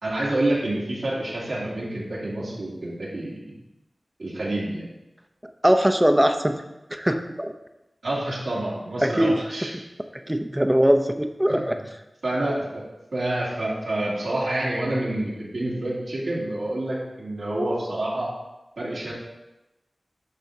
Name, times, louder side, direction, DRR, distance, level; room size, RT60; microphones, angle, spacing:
voice 1, 0.0-3.5 4.2-4.9 8.0-9.7 11.5-11.8 12.2-12.8 13.1-18.3 18.8-19.1, right 1 dB, 85° right, -8 dB, 2.6 m, -28 dB
voice 2, 5.6-6.5 6.9-7.5 9.0-9.3 10.3-11.8, equal, 10° right, 7 dB, 0.7 m, -20 dB
10.5 x 6.4 x 2.8 m, 0.96 s
wide cardioid pair, 60°, 0 cm